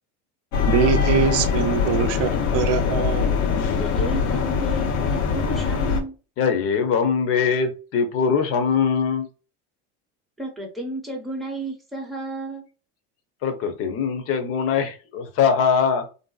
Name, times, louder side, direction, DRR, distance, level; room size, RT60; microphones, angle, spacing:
sound 1, 0.5-6.0, left 6 dB, 85° left, 0.8 m, -22 dB
voice 1, 0.7-3.4, right 7 dB, 45° right, 8 dB, 0.5 m, -23 dB
voice 2, 3.8-6.1 10.4-12.7, right 2 dB, ahead, 1 dB, 0.7 m, -32 dB
voice 3, 6.4-9.3 13.4-16.0, left 6 dB, 40° left, 6 dB, 0.7 m, -22 dB
3.4 x 2.6 x 2.3 m, 0.34 s
cardioid pair, 155°, 35 cm